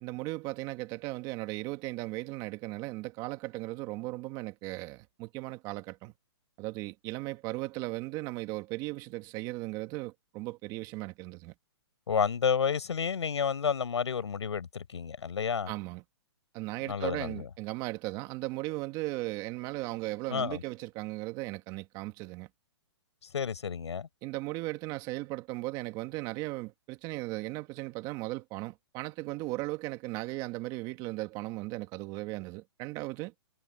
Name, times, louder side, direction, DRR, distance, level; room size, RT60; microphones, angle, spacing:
voice 1, 0.0-6.1 6.6-11.5 15.7-16.0 16.5-22.5 24.2-33.3, right 20 dB, 25° right, 1.9 m, -37 dB
voice 2, 12.1-15.7 16.9-17.5 20.3-20.6 23.3-24.1, left 7 dB, 90° left, 6.0 m, -30 dB
hypercardioid pair, 155°, 14 cm